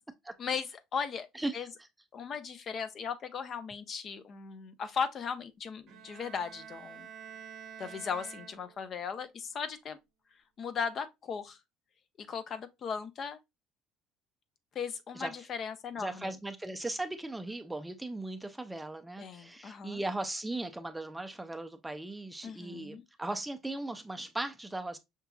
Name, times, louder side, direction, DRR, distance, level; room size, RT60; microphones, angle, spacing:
voice 1, 0.4-1.3 1.5-1.7 2.1-7.1 7.8-10.0 10.6-11.6 12.2-13.4 14.7-16.3 19.2-20.0 22.4-23.0, left 6 dB, 45° left, 0.6 m, -37 dB
voice 2, 1.3-1.7 15.1-15.3 16.0-25.0, right 2 dB, 10° right, 0.4 m, -38 dB
Bowed string instrument, 5.9-9.0, right 8 dB, 60° right, 0.7 m, -48 dB
5.8 x 2.8 x 2.2 m
cardioid pair, 115°, 0 cm